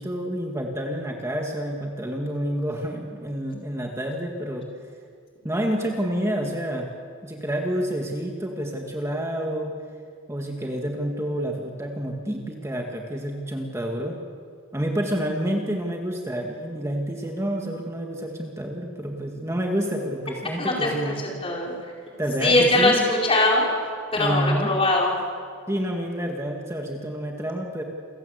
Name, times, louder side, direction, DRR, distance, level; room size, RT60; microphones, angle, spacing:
voice 1, 0.0-4.7 5.4-6.9 7.2-9.7 10.3-14.2 14.7-21.1 22.2-23.1 24.2-24.7 25.7-27.8, equal, 15° right, 1 dB, 1.8 m, -28 dB
voice 2, 20.6-21.9 22.4-25.1, left 1 dB, 25° left, -2 dB, 4.8 m, -22 dB
28.5 x 16.5 x 8.0 m, 2.2 s
head